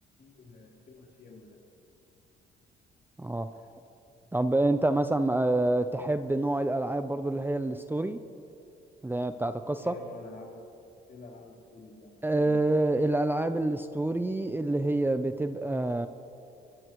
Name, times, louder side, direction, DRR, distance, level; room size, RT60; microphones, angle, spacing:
voice 1, 0.2-1.6 9.8-10.6 11.1-12.5, left 3 dB, 55° left, -2 dB, 3.8 m, -48 dB
voice 2, 4.3-8.2 9.0-10.0 12.2-16.1, right 2 dB, 10° right, 9 dB, 0.6 m, -27 dB
23.5 x 19.5 x 3.1 m, 2.8 s
cardioid pair, 90°, 20 cm